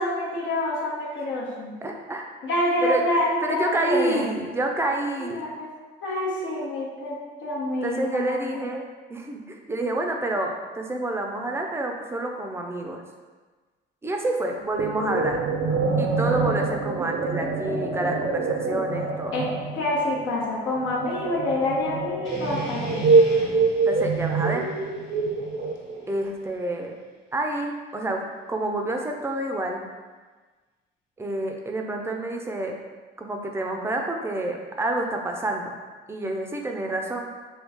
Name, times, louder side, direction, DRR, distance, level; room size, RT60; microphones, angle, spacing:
voice 1, 0.0-1.7 2.4-4.3 5.2-5.7 6.0-7.2 7.4-8.7 19.3-19.5 19.7-23.1, left 1 dB, 85° left, -6 dB, 0.9 m, -27 dB
voice 2, 1.8-2.3 2.8-3.0 3.4-5.5 7.8-13.0 14.0-15.4 16.0-19.4 23.8-24.7 26.1-26.9 27.3-29.8 31.2-32.7 33.2-35.7 36.1-37.3, right 2 dB, 15° right, 2 dB, 0.4 m, -28 dB
sound 1, 14.8-26.1, right 4 dB, 65° right, 0.5 m, -25 dB
sound 2, 22.2-26.4, left 1 dB, 65° left, 1.1 m, -42 dB
3.2 x 2.3 x 3.4 m, 1.4 s
cardioid pair, 90°, 20 cm